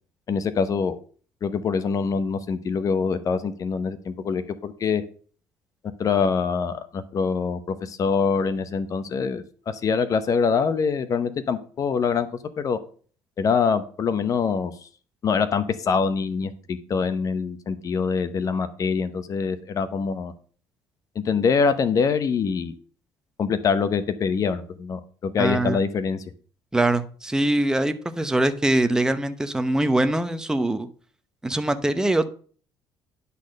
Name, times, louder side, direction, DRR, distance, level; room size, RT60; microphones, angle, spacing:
voice 1, 0.3-1.0 1.4-5.0 6.0-12.3 12.6-12.8 13.4-14.7 15.2-20.3 21.2-22.7 23.4-26.2, left 5 dB, 45° left, 12 dB, 0.9 m, -24 dB
voice 2, 25.4-25.8 26.7-30.9 31.4-32.3, right 1 dB, 10° right, 9 dB, 0.8 m, -23 dB
10.5 x 4.2 x 6.5 m, 0.43 s
cardioid pair, 105°, 8 cm